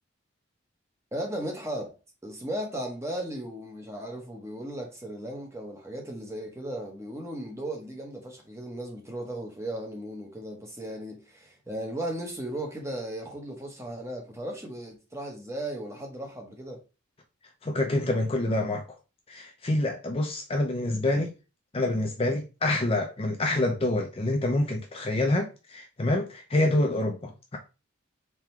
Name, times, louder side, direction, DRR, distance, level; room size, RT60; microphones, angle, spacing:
voice 1, 1.1-2.0 2.2-16.8, right 1 dB, 15° right, 1.0 m, -36 dB
voice 2, 17.6-18.8 19.3-21.3 21.7-27.6, left 1 dB, 25° left, 0.5 m, -27 dB
3.7 x 3.0 x 4.4 m
head